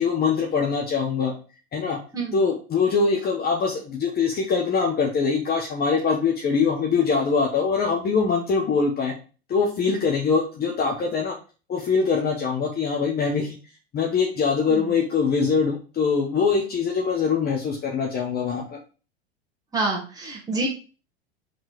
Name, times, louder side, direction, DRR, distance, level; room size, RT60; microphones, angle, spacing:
voice 1, 0.0-1.3 1.7-2.0 2.3-9.1 9.5-11.3 11.7-13.6 13.9-18.8, left 5 dB, 30° left, 0 dB, 1.3 m, -23 dB
voice 2, 19.7-20.7, right 2 dB, 10° right, -3 dB, 2.0 m, -27 dB
5.3 x 3.8 x 5.0 m, 0.35 s
hypercardioid pair, 85°, 32 cm